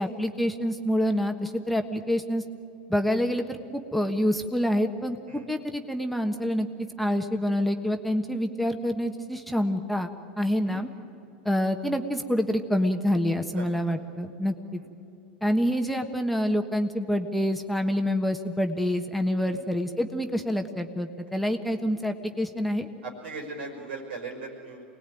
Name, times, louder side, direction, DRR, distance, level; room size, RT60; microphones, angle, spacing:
voice 1, 0.0-2.4 2.9-6.7 7.0-10.9 11.4-14.8 15.4-22.9, equal, ahead, 5 dB, 1.3 m, -27 dB
voice 2, 13.6-14.0 19.4-19.6 21.7-21.9 23.0-24.8, right 3 dB, 85° right, 3 dB, 5.3 m, -39 dB
25.0 x 19.5 x 9.2 m, 3.0 s
hypercardioid pair, 105°, 6 cm